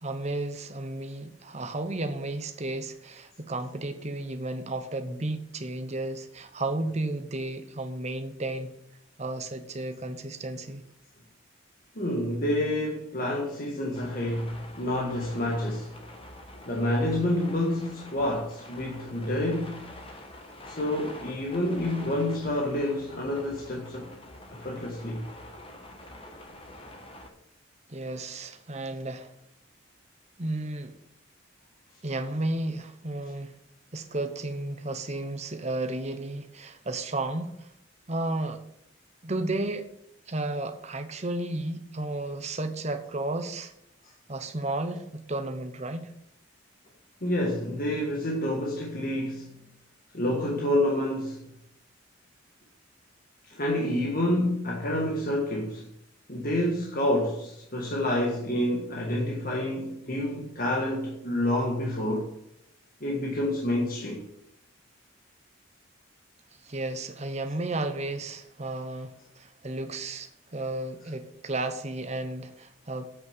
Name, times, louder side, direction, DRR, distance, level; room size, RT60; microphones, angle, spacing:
voice 1, 0.0-8.7 9.2-10.8 27.9-29.3 30.4-31.0 32.0-33.5 33.9-37.7 38.1-38.6 39.2-39.9 40.3-43.7 44.3-46.1 66.6-73.0, right 2 dB, 35° right, 0.9 m, -33 dB
voice 2, 11.9-15.9 16.6-19.8 20.7-24.1 24.5-25.3 47.2-49.5 50.1-51.5 53.4-55.8 56.3-62.3 63.0-64.3, left 1 dB, 45° left, 1.6 m, -28 dB
sound 1, 13.9-27.3, left 1 dB, 25° left, 1.4 m, -46 dB
8.3 x 6.4 x 7.3 m
head